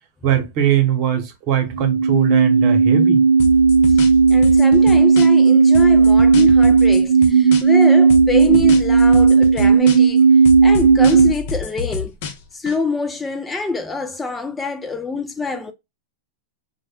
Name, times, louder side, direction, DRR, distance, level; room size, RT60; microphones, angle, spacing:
voice 1, 0.2-3.2, right 9 dB, 50° right, 1.0 m, -20 dB
sound 1, 1.7-11.3, right 5 dB, 90° right, 0.3 m, -13 dB
sound 2, 3.4-5.5 5.7-7.8 8.1-10.2 10.4-12.8, left 4 dB, 60° left, 0.6 m, -29 dB
voice 2, 4.3-10.2 10.6-12.1 12.5-15.7, left 3 dB, 15° left, 0.3 m, -25 dB
2.2 x 2.1 x 3.5 m
hypercardioid pair, 110°, 0 cm